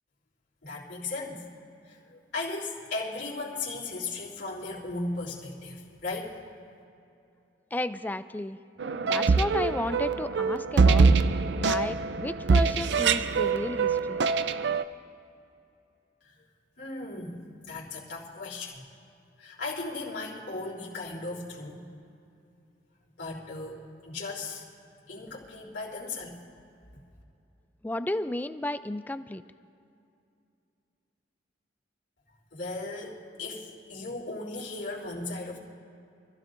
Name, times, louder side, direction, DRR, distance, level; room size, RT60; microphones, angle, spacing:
voice 1, 0.6-1.5 1.9-6.4 16.2-16.4 16.8-17.4 17.6-18.8 19.4-21.9 23.2-24.6 25.0-26.4 32.5-35.6, left 3 dB, 70° left, -5 dB, 3.4 m, -37 dB
voice 2, 7.7-8.6 9.0-11.1 11.6-14.2 27.8-29.4, left 1 dB, 10° left, 12 dB, 0.3 m, -33 dB
sound 1, 8.8-14.8, right 4 dB, 70° right, 0.5 m, -24 dB
25.5 x 15.5 x 2.6 m, 2.6 s
head